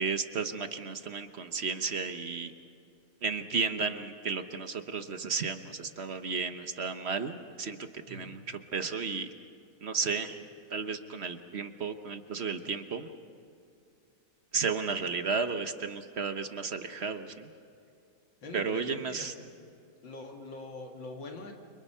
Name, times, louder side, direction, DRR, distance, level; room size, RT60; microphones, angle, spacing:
voice 1, 0.0-2.5 3.2-9.3 9.8-10.4 10.7-13.1 14.5-17.5 18.5-19.3, right 5 dB, 45° right, 8 dB, 1.0 m, -33 dB
voice 2, 18.4-19.5 20.0-21.5, left 2 dB, 75° left, 2 dB, 2.7 m, -43 dB
29.5 x 25.0 x 5.6 m, 2.5 s
omnidirectional pair, 2.1 m